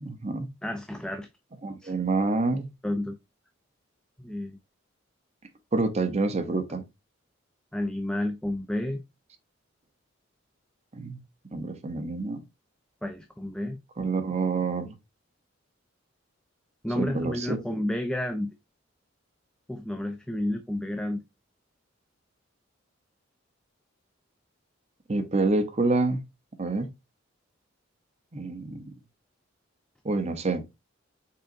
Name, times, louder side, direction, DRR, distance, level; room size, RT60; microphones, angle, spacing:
voice 1, 0.0-0.5 1.6-2.7 5.7-6.8 10.9-11.2 11.5-12.4 14.0-14.9 17.0-17.6 25.1-26.2 26.6-26.9 28.3-28.8 30.0-30.6, right 3 dB, 35° right, 0.7 m, -27 dB
voice 2, 0.6-1.3 1.8-1.9 2.8-3.2 4.2-4.6 7.7-9.0 13.0-13.8 16.8-18.5 19.7-21.2, left 1 dB, 5° left, 0.4 m, -31 dB
5.6 x 3.8 x 2.5 m
head